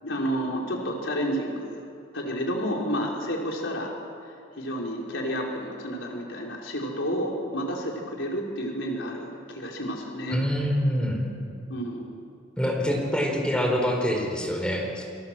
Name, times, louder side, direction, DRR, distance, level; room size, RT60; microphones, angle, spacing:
voice 1, 0.0-1.8 2.1-3.9 4.5-10.4 11.7-12.1, equal, 75° left, -1 dB, 4.4 m, -30 dB
voice 2, 10.3-11.3 12.6-15.0, equal, 5° left, 0 dB, 4.6 m, -25 dB
29.5 x 24.0 x 7.7 m, 2.4 s
head